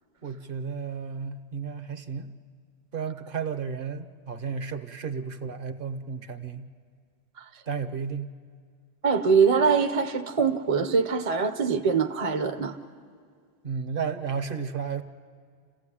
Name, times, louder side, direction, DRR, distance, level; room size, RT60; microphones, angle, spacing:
voice 1, 0.2-2.3 2.9-6.7 7.7-8.3 13.6-15.0, right 6 dB, 55° right, 9 dB, 1.1 m, -33 dB
voice 2, 9.0-12.8, right 5 dB, 35° right, 6 dB, 0.8 m, -23 dB
28.5 x 15.5 x 9.9 m, 2.1 s
omnidirectional pair, 1.1 m